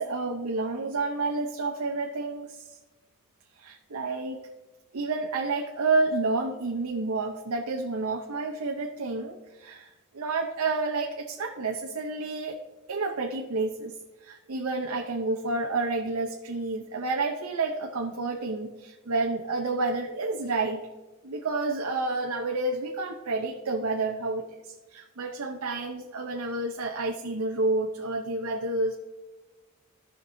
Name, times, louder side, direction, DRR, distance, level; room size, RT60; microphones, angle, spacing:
voice 1, 0.0-2.8 3.6-4.5 4.9-12.6 12.9-13.9 14.2-20.9 21.2-28.9, right 3 dB, 90° right, 2 dB, 0.7 m, -30 dB
15.5 x 5.9 x 2.7 m, 1.2 s
head